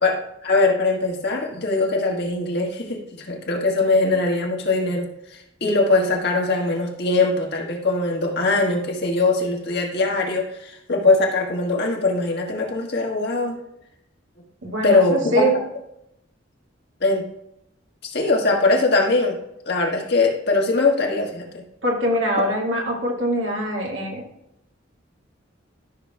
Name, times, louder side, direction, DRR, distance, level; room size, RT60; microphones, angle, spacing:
voice 1, 0.0-5.1 5.6-13.6 14.8-15.5 17.0-17.2 18.0-19.4 19.6-21.6, left 3 dB, 60° left, 0 dB, 1.6 m, -21 dB
voice 2, 14.6-15.5 21.8-24.2, right 1 dB, 75° right, -1 dB, 2.1 m, -23 dB
13.0 x 6.2 x 2.3 m, 0.83 s
head